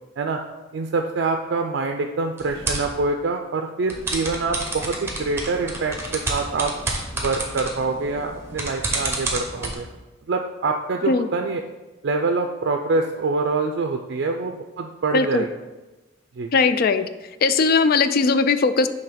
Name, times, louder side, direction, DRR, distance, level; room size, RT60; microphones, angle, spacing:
voice 1, 0.7-6.7 7.1-9.9 10.3-11.6 12.0-15.5 16.4-16.5, right 3 dB, 60° right, 4 dB, 0.4 m, -25 dB
sound 1, 2.4-2.9 3.9-9.7, right 2 dB, 15° right, 0.9 m, -30 dB
voice 2, 15.1-15.4 16.5-17.1 17.4-18.9, left 4 dB, 50° left, 11 dB, 0.3 m, -19 dB
6.9 x 3.3 x 5.1 m, 1.1 s
head